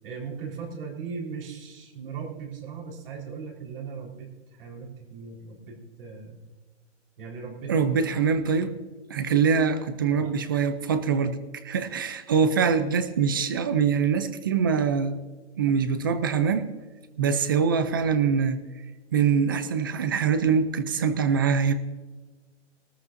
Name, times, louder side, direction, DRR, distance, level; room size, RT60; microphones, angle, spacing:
voice 1, 0.0-6.4 7.2-7.7 8.6-8.7 10.2-10.7, right 5 dB, 50° right, -1 dB, 4.4 m, -38 dB
voice 2, 7.7-8.7 9.1-11.4 11.6-15.2 15.6-16.6 17.2-18.6 19.1-21.7, right 6 dB, 20° right, 11 dB, 0.4 m, -23 dB
21.0 x 13.5 x 2.6 m, 1.3 s
hypercardioid pair, 165°, 35 cm